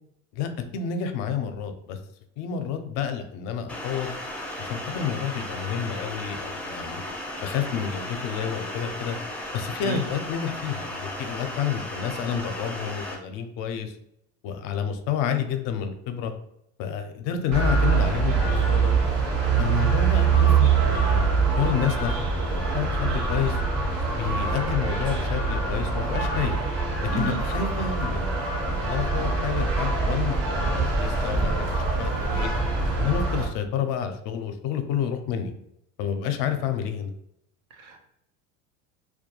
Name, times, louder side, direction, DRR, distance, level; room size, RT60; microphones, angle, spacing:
voice 1, 0.3-2.0 2.4-4.1 4.6-7.0 7.4-9.2 9.5-14.0 14.4-16.3 16.8-18.9 19.6-21.3 21.6-23.6 24.1-26.5 27.0-28.3 28.6-32.5 33.0-35.5 36.0-37.1, left 8 dB, 60° left, 8 dB, 0.5 m, -29 dB
sound 1, 3.7-13.1, left 1 dB, 5° left, 0.5 m, -35 dB
voice 2, 9.8-10.0 27.1-27.4 37.8-38.0, right 5 dB, 85° right, 2 dB, 0.6 m, -31 dB
sound 2, 17.5-33.5, right 4 dB, 55° right, 1.0 m, -24 dB
2.2 x 2.2 x 2.9 m, 0.75 s
supercardioid pair, 95°, 38 cm